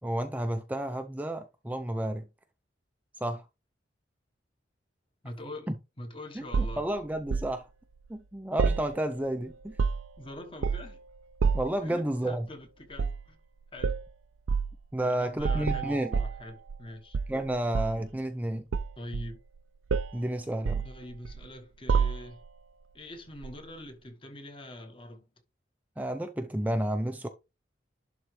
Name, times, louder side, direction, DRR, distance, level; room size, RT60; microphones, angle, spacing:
voice 1, 0.0-2.2 3.2-3.4 5.7-5.8 6.4-7.7 8.1-9.8 11.5-12.5 14.9-16.2 17.3-18.7 20.1-20.8 26.0-27.3, right 1 dB, 10° right, 0.4 m, -31 dB
voice 2, 5.2-6.8 10.2-11.0 11.8-13.4 13.7-14.0 15.0-17.2 19.0-19.4 20.8-22.4 22.9-25.3, left 1 dB, 25° left, 1.2 m, -44 dB
sound 1, 6.5-7.5 8.6-9.3 9.6-10.2 10.6-11.0 11.4-11.8 12.9-13.2 13.8-14.1 14.5-14.7 15.4-16.9 17.1-18.1 18.7-19.6 19.9-20.2 20.7-21.5 21.9-22.5 23.4-23.6, right 5 dB, 85° right, 0.4 m, -29 dB
11.0 x 3.8 x 3.2 m
head